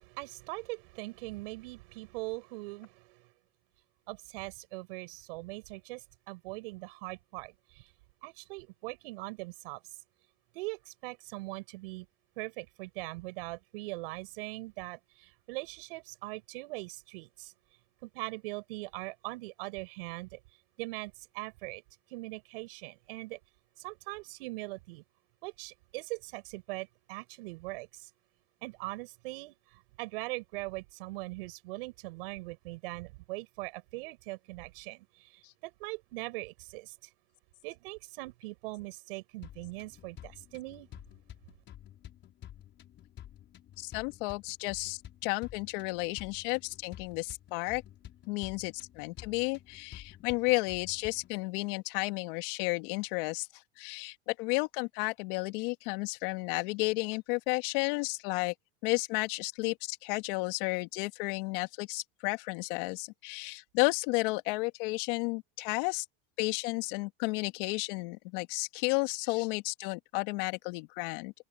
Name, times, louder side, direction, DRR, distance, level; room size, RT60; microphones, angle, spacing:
voice 1, 0.0-3.3 4.1-7.9 8.2-9.8 10.5-12.1 12.4-17.5 18.0-20.4 20.8-21.8 22.1-23.4 23.8-25.0 25.4-28.1 28.6-37.1 37.6-40.9, right 24 dB, 70° right, 6.5 m, -41 dB
sound 1, 39.4-51.4, left 11 dB, 40° left, 5.7 m, -51 dB
voice 2, 43.8-47.8 48.3-58.5 58.8-66.0 66.4-71.3, left 26 dB, 65° left, 2.3 m, -32 dB
supercardioid pair, 115°, 29 cm